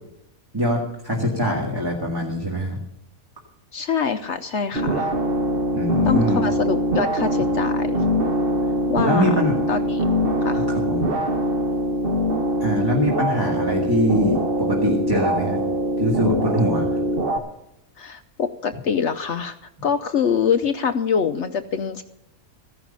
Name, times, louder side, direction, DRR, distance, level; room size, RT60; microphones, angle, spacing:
voice 1, 0.5-2.8 5.7-6.4 9.0-9.6 10.5-11.1 12.6-15.6 16.0-16.9, equal, 15° right, -1 dB, 1.9 m, -23 dB
voice 2, 3.7-5.1 6.1-8.0 8.9-9.2 9.7-10.0 10.4-10.7 18.0-19.6 19.8-22.0, left 6 dB, 60° left, 9 dB, 0.9 m, -24 dB
sound 1, 4.8-17.4, equal, 40° right, 1.6 m, -23 dB
15.0 x 11.0 x 5.5 m, 0.81 s
omnidirectional pair, 1.5 m